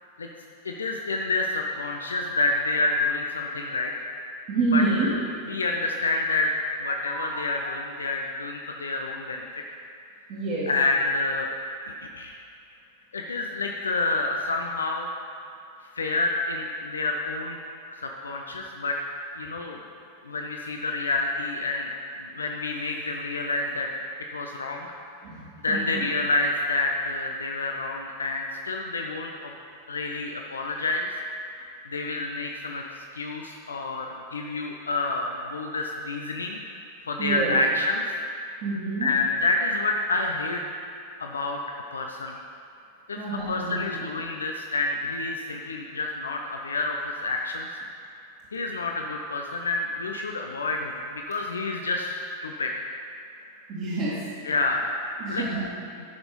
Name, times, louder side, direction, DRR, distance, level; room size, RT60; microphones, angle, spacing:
voice 1, 0.6-3.9 4.7-5.2 5.5-6.5 6.8-9.5 10.7-11.5 11.9-12.4 13.1-15.1 15.9-17.6 18.0-19.0 19.4-19.8 20.2-21.9 22.2-24.0 24.3-24.9 25.6-29.5 29.9-31.1 31.5-36.6 37.0-38.0 39.0-40.6 41.2-41.6 41.9-42.4 43.1-47.7 48.5-52.7 54.4-54.8 55.3-55.5, left 3 dB, 70° left, 1 dB, 0.7 m, -28 dB
voice 2, 4.5-5.1 6.9-7.4 7.7-7.8 10.3-10.7 25.2-26.0 37.2-37.6 38.6-39.1 43.2-44.0 53.7-54.2 55.2-55.6, right 3 dB, 40° right, -8 dB, 1.9 m, -28 dB
11.5 x 6.0 x 5.3 m, 2.5 s
figure-of-eight pair, 90°, 0 cm